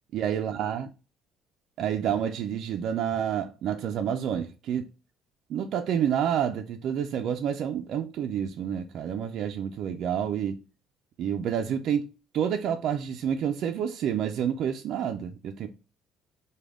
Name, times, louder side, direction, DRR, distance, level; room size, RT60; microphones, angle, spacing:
voice 1, 0.1-0.9 1.8-4.9 5.5-10.6 11.2-15.7, right 9 dB, 50° right, 0.3 m, -29 dB
5.0 x 2.2 x 3.5 m
cardioid pair, 165°, 0 cm